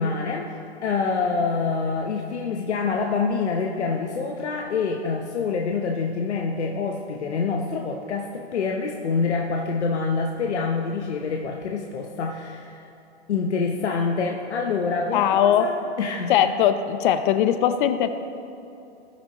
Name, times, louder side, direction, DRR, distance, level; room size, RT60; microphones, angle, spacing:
voice 1, 0.0-12.9 13.3-16.4, left 4 dB, 90° left, 1 dB, 0.9 m, -26 dB
voice 2, 15.1-15.7 16.3-18.1, left 10 dB, 50° left, 10 dB, 0.7 m, -20 dB
18.0 x 6.1 x 3.0 m, 2.7 s
hypercardioid pair, 135°, 33 cm